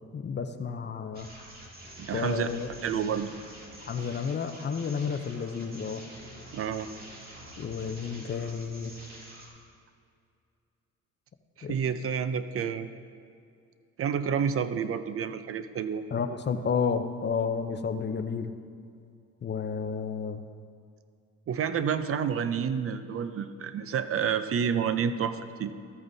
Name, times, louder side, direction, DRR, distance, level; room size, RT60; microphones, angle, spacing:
voice 1, 0.1-1.3 2.1-2.7 3.9-6.0 7.6-8.9 11.6-11.7 16.1-18.5 19.4-20.4, left 6 dB, 35° left, 9 dB, 0.6 m, -31 dB
sound 1, 1.1-9.5, right 1 dB, 30° right, 2.3 m, -47 dB
voice 2, 2.0-2.5 2.8-3.3 6.5-6.9 11.6-12.9 14.0-16.0 21.5-25.7, right 7 dB, 50° right, 11 dB, 0.5 m, -29 dB
14.0 x 8.7 x 2.7 m, 2.4 s
cardioid pair, 90°, 30 cm